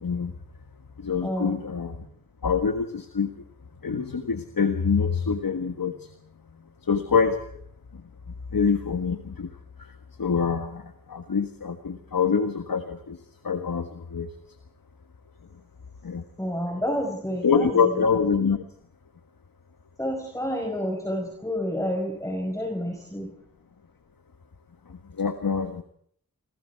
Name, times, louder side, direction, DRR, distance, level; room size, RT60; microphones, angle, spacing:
voice 1, 0.0-0.3 1.0-2.0 2.4-3.3 3.8-5.9 6.9-7.3 8.5-9.5 10.2-10.8 11.1-13.2 13.4-14.3 16.0-16.2 17.4-18.6 25.2-25.8, left 5 dB, 80° left, 8 dB, 1.6 m, -25 dB
voice 2, 1.2-1.6 16.4-18.0 20.0-23.3, equal, 10° left, 2 dB, 5.3 m, -29 dB
27.5 x 26.0 x 4.7 m, 0.63 s
wide cardioid pair, 45°, 34 cm